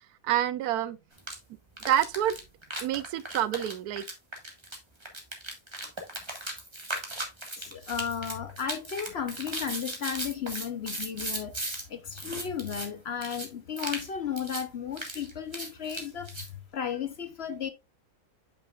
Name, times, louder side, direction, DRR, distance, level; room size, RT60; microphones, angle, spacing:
voice 1, 0.2-1.0 1.9-2.4 2.8-4.0, right 11 dB, 85° right, 1.1 m, -27 dB
sound 1, 1.2-1.4 1.8-11.8 12.1-12.9 13.2-13.5 13.8-14.1 14.4-14.6 14.9-16.5, right 1 dB, 20° right, 1.5 m, -37 dB
voice 2, 7.6-17.7, left 8 dB, 55° left, 0.8 m, -34 dB
8.5 x 5.8 x 2.4 m
omnidirectional pair, 1.6 m